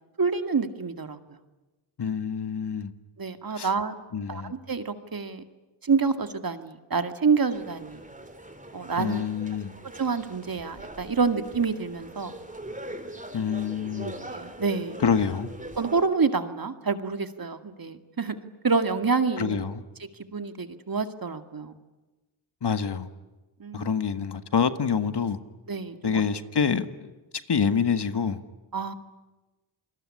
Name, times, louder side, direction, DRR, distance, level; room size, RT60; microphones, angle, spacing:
voice 1, 0.2-1.2 3.2-3.9 4.3-5.4 5.8-8.0 8.7-9.3 9.9-12.3 14.3-15.0 15.8-18.4 18.6-19.6 20.3-21.7 23.6-23.9 25.7-26.2 28.7-28.9, right 5 dB, 45° right, 2.2 m, -27 dB
voice 2, 2.0-2.9 3.5-3.7 4.1-4.5 9.0-9.7 13.3-14.1 15.0-15.5 19.4-19.8 22.6-23.1 23.7-25.4 26.0-27.1 27.5-28.4, left 6 dB, 55° left, 1.7 m, -26 dB
sound 1, 7.5-16.0, right 1 dB, 15° right, 3.5 m, -42 dB
28.0 x 20.5 x 10.0 m
cardioid pair, 55°, 49 cm